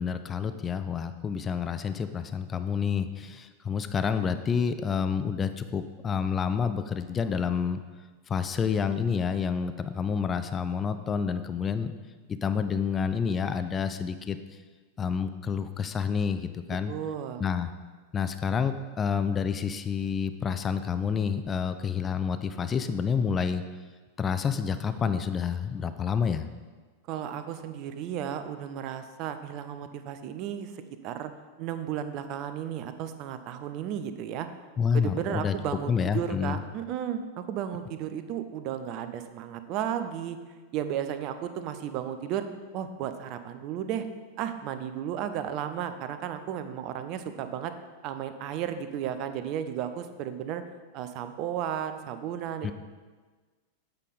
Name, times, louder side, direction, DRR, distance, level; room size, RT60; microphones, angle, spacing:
voice 1, 0.0-7.8 8.3-11.9 12.3-14.4 15.0-16.9 17.4-17.7 18.1-23.6 24.2-26.5 34.8-35.6 35.9-36.6 52.6-52.7, left 6 dB, 20° left, 10 dB, 0.4 m, -28 dB
voice 2, 16.9-17.4 27.1-31.3 31.6-34.5 34.9-40.4 40.7-42.5 42.7-44.0 44.4-47.7 48.0-50.6 50.9-52.7, right 9 dB, 40° right, 10 dB, 0.5 m, -34 dB
8.1 x 5.4 x 4.1 m, 1.4 s
figure-of-eight pair, 90°, 0 cm